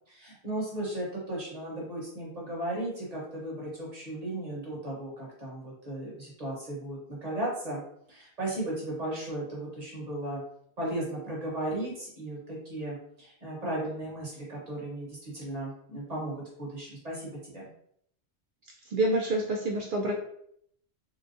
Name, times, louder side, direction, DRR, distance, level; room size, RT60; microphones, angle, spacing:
voice 1, 0.1-7.8 8.1-10.4 10.8-17.7, right 1 dB, 40° right, -4 dB, 1.1 m, -36 dB
voice 2, 18.8-20.1, right 1 dB, 60° right, -1 dB, 0.6 m, -27 dB
3.8 x 2.3 x 2.6 m, 0.70 s
omnidirectional pair, 1.1 m